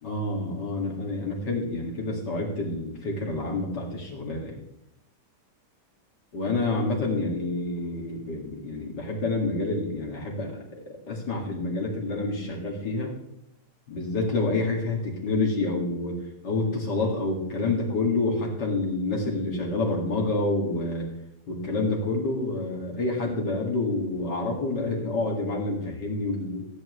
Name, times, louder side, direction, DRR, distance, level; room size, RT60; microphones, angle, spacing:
voice 1, 0.0-4.6 6.3-13.1 13.9-16.2 16.4-21.1 21.5-26.7, left 2 dB, 75° left, -1 dB, 2.9 m, -28 dB
14.5 x 9.1 x 3.2 m, 0.83 s
omnidirectional pair, 1.9 m